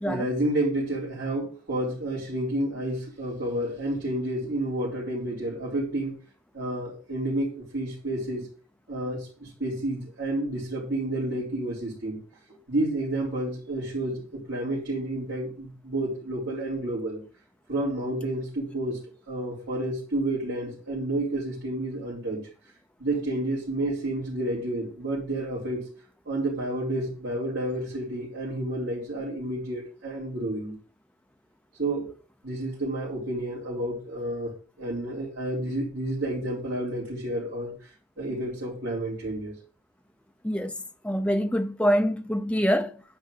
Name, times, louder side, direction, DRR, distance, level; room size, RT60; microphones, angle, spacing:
voice 1, 0.0-6.2 6.5-8.5 8.9-12.2 12.7-17.2 17.7-22.4 23.0-25.9 26.3-30.8 31.8-32.1 32.4-34.5 34.8-37.7 38.2-39.5, right 1 dB, 55° right, 4.3 m, -30 dB
voice 2, 41.0-43.0, equal, 5° left, 0.7 m, -25 dB
10.5 x 4.9 x 6.6 m
head